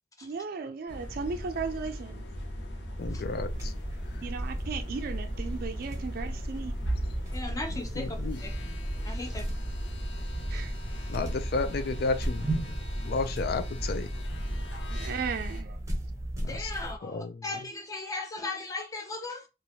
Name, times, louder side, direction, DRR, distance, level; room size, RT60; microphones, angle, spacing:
voice 1, 0.2-2.3 4.2-6.8 10.5-10.7 14.9-15.8, right 5 dB, 55° right, 0.4 m, -36 dB
sound 1, 0.9-15.6, equal, 85° left, 0.7 m, -39 dB
voice 2, 3.0-3.7 8.0-8.4 11.1-12.5 13.0-14.1 16.4-16.7 17.0-17.4, left 3 dB, 60° left, 0.4 m, -32 dB
sound 2, 3.0-17.0, right 1 dB, 15° right, 0.8 m, -35 dB
voice 3, 7.3-8.5 9.0-9.4 10.5-10.6 16.5-19.5, left 2 dB, 20° left, 0.6 m, -37 dB
3.0 x 2.4 x 2.7 m
head